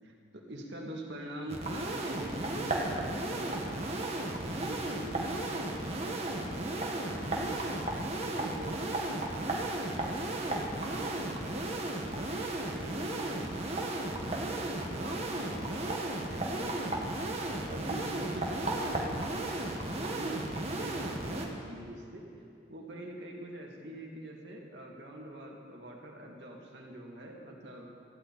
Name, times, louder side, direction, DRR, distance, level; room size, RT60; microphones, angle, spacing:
voice 1, 0.0-4.0 4.6-7.7 8.0-14.6 14.9-22.2 22.7-27.8, right 1 dB, 65° right, -1 dB, 2.5 m, -44 dB
sound 1, 1.5-21.5, right 2 dB, 35° right, 1.7 m, -34 dB
18.5 x 15.0 x 4.3 m, 2.4 s
head